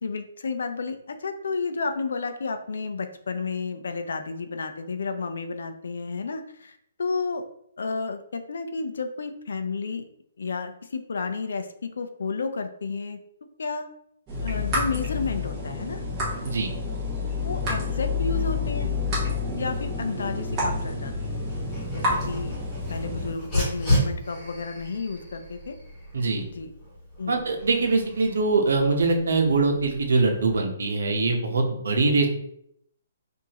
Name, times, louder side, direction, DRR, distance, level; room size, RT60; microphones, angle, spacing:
voice 1, 0.0-7.4 7.8-10.1 10.4-13.2 13.6-13.9 14.4-16.0 17.4-18.9 19.6-21.3 21.9-22.6 22.9-25.8 26.5-26.7 27.2-27.5, left 4 dB, 75° left, 8 dB, 0.5 m, -31 dB
sound 1, 14.3-23.3, left 3 dB, 15° right, 1.1 m, -29 dB
Dog, 21.5-30.6, equal, 15° left, 1.3 m, -33 dB
voice 2, 26.1-26.5 27.3-32.3, right 3 dB, 75° right, 3 dB, 0.9 m, -23 dB
4.7 x 2.7 x 2.9 m, 0.71 s
hypercardioid pair, 175°, 0 cm